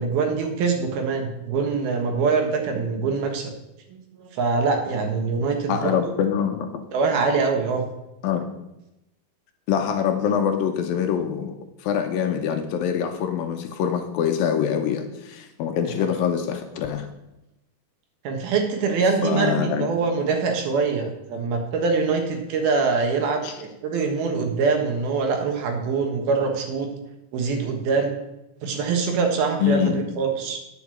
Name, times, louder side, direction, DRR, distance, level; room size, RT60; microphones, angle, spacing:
voice 1, 0.0-3.5 3.9-6.1 6.9-7.9 16.0-16.1 18.2-26.9 27.3-28.1 28.6-30.6, right 4 dB, 75° right, 4 dB, 3.3 m, -24 dB
voice 2, 5.7-6.7 8.2-8.5 9.7-11.6 11.8-17.1 19.2-19.9 23.4-23.5 29.6-30.0, left 8 dB, 75° left, 6 dB, 2.4 m, -24 dB
9.5 x 6.1 x 8.3 m, 0.91 s
omnidirectional pair, 4.5 m